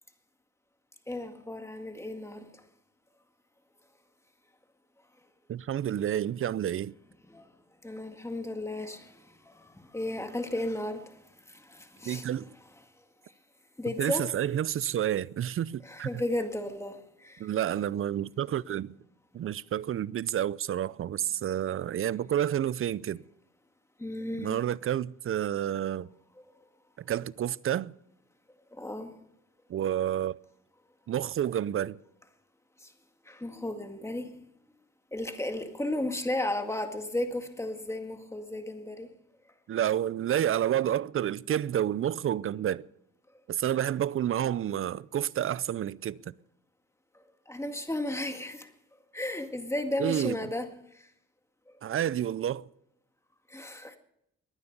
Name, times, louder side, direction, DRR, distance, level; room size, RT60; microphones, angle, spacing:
voice 1, 1.1-2.7 7.3-7.5 7.8-12.3 13.2-13.3 13.8-14.3 15.8-17.5 24.0-24.6 28.7-29.2 32.8-32.9 33.2-34.5 35.1-39.1 47.1-48.7 49.1-51.1 51.7-51.8 53.5-54.0, left 1 dB, 10° left, 2.0 m, -35 dB
voice 2, 5.5-6.9 12.1-12.5 14.0-16.2 17.4-18.9 19.3-23.2 24.4-26.1 27.0-27.9 29.7-30.4 31.1-32.0 39.7-42.9 43.5-46.3 50.0-50.4 51.8-52.7, right 10 dB, 45° right, 0.5 m, -29 dB
22.0 x 9.7 x 5.3 m
cardioid pair, 90°, 30 cm